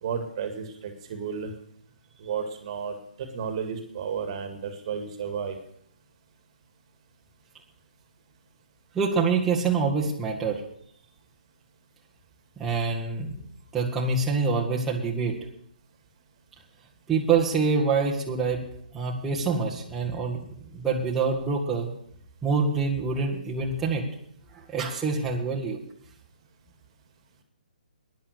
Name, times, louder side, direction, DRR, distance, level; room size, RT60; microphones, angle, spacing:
voice 1, 0.0-1.5 2.2-5.6, right 6 dB, 40° right, 6 dB, 2.1 m, -33 dB
voice 2, 8.9-10.6 12.6-13.4 13.7-15.4 17.1-18.6 18.9-20.4 20.7-21.9 22.4-24.1 24.5-25.8, right 4 dB, 10° right, -4 dB, 1.9 m, -26 dB
12.5 x 10.5 x 6.7 m, 0.70 s
figure-of-eight pair, 135°, 5 cm